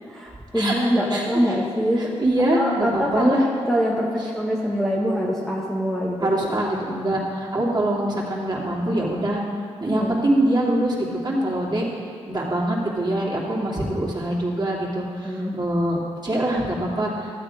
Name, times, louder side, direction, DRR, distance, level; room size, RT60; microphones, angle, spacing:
voice 1, 0.1-2.1 2.5-6.3 9.9-10.3 13.8-14.0 15.2-15.6, equal, ahead, -4 dB, 1.5 m, -24 dB
voice 2, 2.0-3.4 6.2-9.4 9.8-11.0 11.2-11.9 12.3-17.3, right 1 dB, 35° right, -4 dB, 2.8 m, -24 dB
12.5 x 7.7 x 4.9 m, 2.2 s
supercardioid pair, 45°, 13 cm